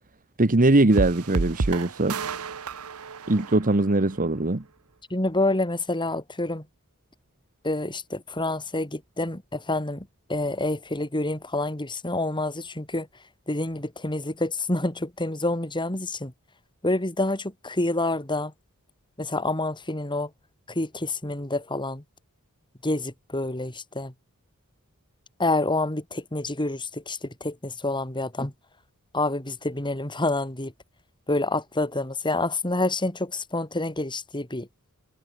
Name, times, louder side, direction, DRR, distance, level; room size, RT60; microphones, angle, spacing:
voice 1, 0.4-2.2 3.3-4.6, right 2 dB, 40° right, 1.2 m, -21 dB
sound 1, 0.9-4.2, right 4 dB, 75° right, 0.9 m, -31 dB
voice 2, 5.1-6.6 7.6-13.1 13.5-16.3 16.8-18.5 19.2-20.3 20.8-22.0 22.8-24.1 25.4-28.5 29.1-30.7 31.3-34.7, left 2 dB, 20° left, 3.6 m, -28 dB
head